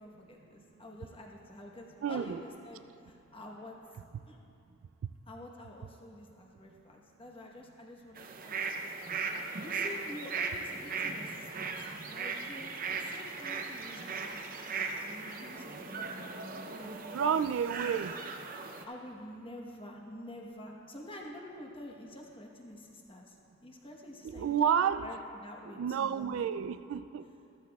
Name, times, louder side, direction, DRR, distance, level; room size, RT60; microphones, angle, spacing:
voice 1, 0.0-3.8 4.3-4.4 5.3-8.8 9.1-11.8 12.1-17.4 18.9-26.5, left 1 dB, 25° left, 0 dB, 1.1 m, -48 dB
voice 2, 2.0-2.4 17.1-18.2 24.2-25.1 25.7-27.2, right 8 dB, 70° right, 12 dB, 0.3 m, -30 dB
sound 1, 8.2-18.8, right 4 dB, 45° right, 0.7 m, -38 dB
14.0 x 13.5 x 2.3 m, 2.6 s
head